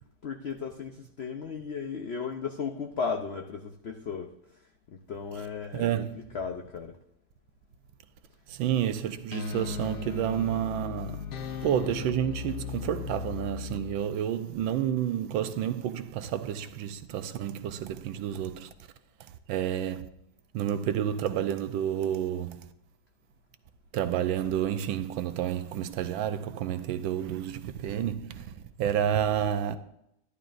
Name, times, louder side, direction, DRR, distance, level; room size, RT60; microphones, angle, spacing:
voice 1, 0.2-6.1 6.3-7.0, left 5 dB, 85° left, 0.5 m, -36 dB
voice 2, 5.7-6.1 8.5-11.3 11.6-18.7 19.5-20.1 20.5-22.6 23.9-29.8, right 10 dB, 85° right, 1.5 m, -30 dB
sound 1, 8.9-14.0, left 7 dB, 65° left, 1.3 m, -37 dB
13.5 x 11.0 x 2.5 m
omnidirectional pair, 2.1 m